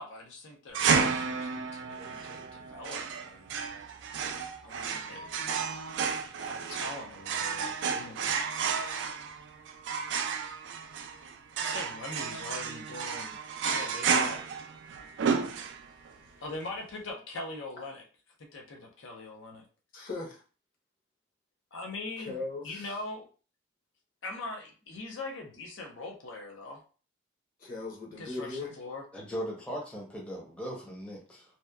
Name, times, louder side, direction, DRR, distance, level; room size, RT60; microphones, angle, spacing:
voice 1, 0.0-3.5 4.6-5.3 5.6-5.9 6.3-8.4 11.6-13.4 13.7-14.4 16.4-18.0 18.4-19.6 21.7-23.3 24.2-26.8 28.2-29.0, left 2 dB, 75° left, 1 dB, 0.6 m, -42 dB
sound 1, 0.7-16.1, right 6 dB, 65° right, 0.3 m, -32 dB
voice 2, 15.6-16.4 19.9-20.4 22.2-23.0 27.6-28.7, left 3 dB, 45° left, -2 dB, 0.9 m, -40 dB
voice 3, 29.1-31.4, equal, 5° left, -3 dB, 0.6 m, -38 dB
2.8 x 2.1 x 2.2 m, 0.37 s
head